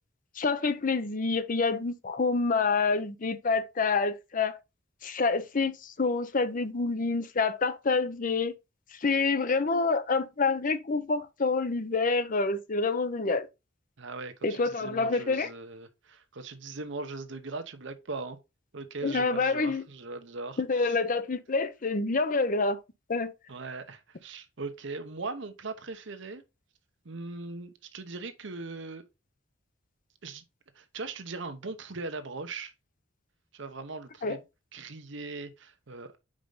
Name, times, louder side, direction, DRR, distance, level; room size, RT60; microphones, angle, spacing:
voice 1, 0.4-4.6 5.0-8.5 8.9-13.5 14.4-15.5 19.0-19.8 20.6-22.8 23.1-23.3 34.2-34.4, left 4 dB, 40° left, 0.6 m, -27 dB
voice 2, 14.0-18.4 18.7-21.0 23.5-26.4 27.0-29.0 30.2-30.4 30.7-32.7 33.5-34.4 34.7-36.1, right 3 dB, 65° right, 0.9 m, -39 dB
5.2 x 5.0 x 3.8 m
head